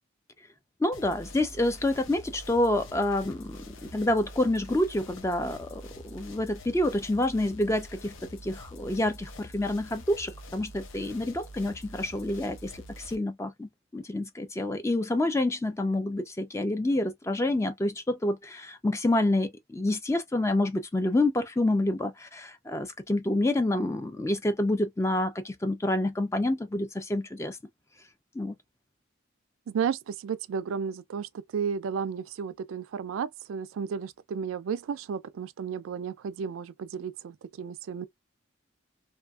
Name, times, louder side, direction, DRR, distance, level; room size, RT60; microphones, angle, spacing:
voice 1, 0.8-8.1 8.4-27.6 28.4-28.5, left 1 dB, 15° left, 0.3 m, -28 dB
sound 1, 0.9-13.2, equal, 75° left, 0.6 m, -46 dB
voice 2, 29.7-38.1, right 6 dB, 80° right, 0.3 m, -33 dB
2.6 x 2.4 x 2.3 m
head